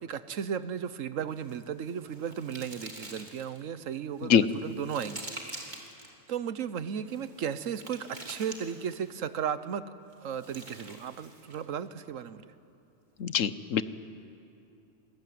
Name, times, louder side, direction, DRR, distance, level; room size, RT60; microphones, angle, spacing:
voice 1, 0.0-5.3 5.5-5.7 6.3-9.9 10.2-12.4, right 8 dB, 90° right, 13 dB, 1.3 m, -35 dB
sound 1, 1.3-3.6 4.2-6.1 7.0-9.1 10.1-11.7, right 1 dB, 35° right, 3.0 m, -46 dB
voice 2, 13.2-13.8, left 8 dB, 80° left, 14 dB, 1.2 m, -23 dB
27.0 x 20.5 x 9.4 m, 2.6 s
omnidirectional pair, 1.3 m